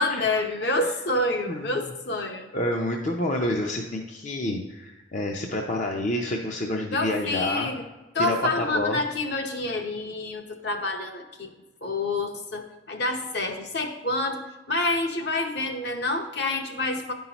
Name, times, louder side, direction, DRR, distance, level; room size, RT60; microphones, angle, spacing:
voice 1, 0.0-2.5 6.9-7.8 8.1-11.5 11.8-17.1, left 2 dB, 60° left, 4 dB, 0.9 m, -28 dB
voice 2, 1.5-1.9 2.5-7.7 8.2-9.0, left 1 dB, 40° left, 1 dB, 0.5 m, -28 dB
10.0 x 5.5 x 2.9 m, 1.2 s
head